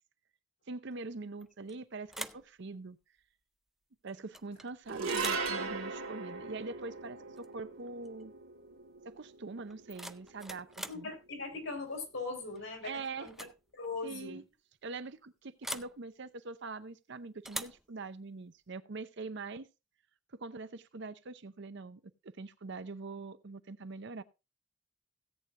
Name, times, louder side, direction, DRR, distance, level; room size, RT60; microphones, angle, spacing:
voice 1, 0.7-3.0 4.0-8.3 9.0-11.1 12.8-13.3 14.0-14.4 14.8-19.7 20.3-24.2, right 3 dB, 55° right, 0.7 m, -43 dB
Lock Unlock Wooden Door, 1.4-1.7 2.1-2.5 4.3-4.7 5.1-5.5 7.4-7.5 7.9-8.2 9.7-11.1 12.5-12.8 13.2-13.6 13.8-13.9 15.6-16.0 17.4-17.8, right 1 dB, ahead, 0.4 m, -43 dB
sound 1, 4.9-11.3, right 4 dB, 85° right, 2.5 m, -39 dB
voice 2, 10.9-12.9 13.2-13.5 13.7-14.4, left 3 dB, 65° left, 4.1 m, -40 dB
17.0 x 8.7 x 2.6 m
head